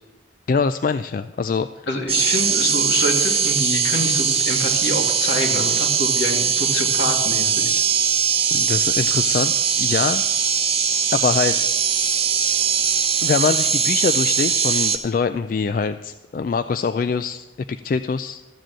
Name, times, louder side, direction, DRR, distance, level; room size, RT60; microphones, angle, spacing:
voice 1, 0.5-1.7 8.5-9.5 9.8-10.2 11.1-11.6 13.2-18.4, left 5 dB, 45° left, 11 dB, 0.3 m, -23 dB
voice 2, 1.9-7.8, left 1 dB, 70° left, 1 dB, 2.4 m, -26 dB
sound 1, 2.1-15.0, right 7 dB, 30° right, 0.9 m, -20 dB
14.0 x 7.7 x 7.5 m, 1.2 s
head